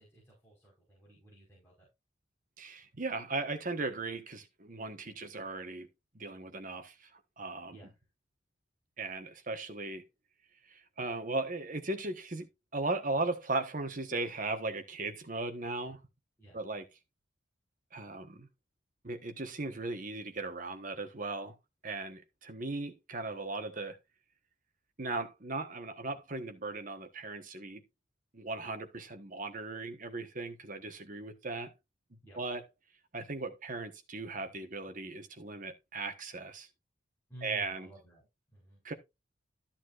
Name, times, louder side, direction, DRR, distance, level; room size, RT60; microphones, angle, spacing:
voice 1, 0.0-1.9 5.1-5.2 7.7-7.9 16.4-16.6 32.2-32.4 37.3-38.3 38.5-38.8, right 1 dB, 10° left, 5.1 m, -54 dB
voice 2, 2.6-5.9 6.1-7.8 9.0-10.0 10.6-16.0 16.5-16.9 17.9-18.5 19.0-21.6 21.8-24.0 25.0-27.8 28.3-31.7 32.1-32.6 33.1-36.7 37.4-37.9 38.8-38.9, right 3 dB, 45° right, 1.3 m, -37 dB
13.5 x 7.3 x 2.5 m
head